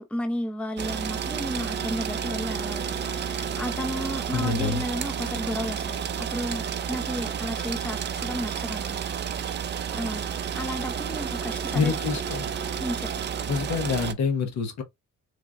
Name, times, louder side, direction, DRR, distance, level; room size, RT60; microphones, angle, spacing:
voice 1, 0.0-9.6 9.9-11.9 12.8-13.2, equal, 5° left, 0.6 m, -33 dB
sound 1, 0.8-14.1, right 7 dB, 40° right, 0.4 m, -31 dB
voice 2, 4.3-4.8 11.7-12.5 13.5-14.8, left 5 dB, 65° left, 1.0 m, -26 dB
3.8 x 3.3 x 2.2 m
cardioid pair, 115°, 29 cm